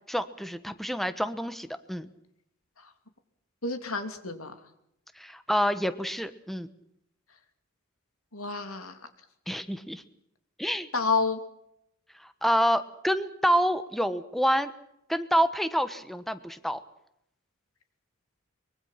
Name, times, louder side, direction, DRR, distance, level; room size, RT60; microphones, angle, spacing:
voice 1, 0.1-2.1 5.2-6.7 9.5-10.0 10.6-10.9 12.2-14.7 15.1-16.8, equal, ahead, 12 dB, 1.2 m, -27 dB
voice 2, 3.6-4.5 8.3-9.0 10.9-11.4, left 4 dB, 85° left, 8 dB, 2.9 m, -29 dB
24.0 x 22.5 x 5.8 m, 0.77 s
head